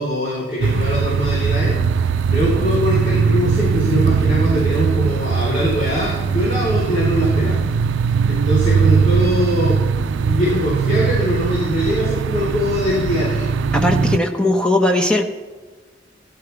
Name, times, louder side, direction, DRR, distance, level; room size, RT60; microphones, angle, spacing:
voice 1, 0.0-7.6 8.3-9.8 10.3-13.5, equal, 40° left, -7 dB, 4.0 m, -22 dB
sound 1, 0.6-14.2, right 5 dB, 90° right, 0.4 m, -19 dB
voice 2, 13.7-15.3, left 1 dB, 5° left, 2 dB, 1.0 m, -18 dB
17.0 x 11.5 x 3.4 m, 1.4 s
head